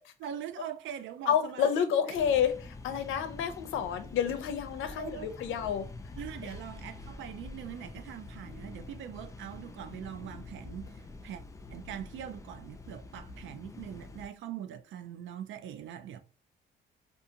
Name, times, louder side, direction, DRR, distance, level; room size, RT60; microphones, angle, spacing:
voice 1, 0.0-2.2 5.0-5.3 6.2-11.4 11.7-16.2, right 10 dB, 75° right, 0.4 m, -42 dB
voice 2, 1.3-5.8, left 8 dB, 85° left, 0.5 m, -29 dB
sound 1, 2.1-14.3, left 3 dB, 15° left, 0.3 m, -46 dB
2.5 x 2.4 x 2.7 m
cardioid pair, 90°, 20 cm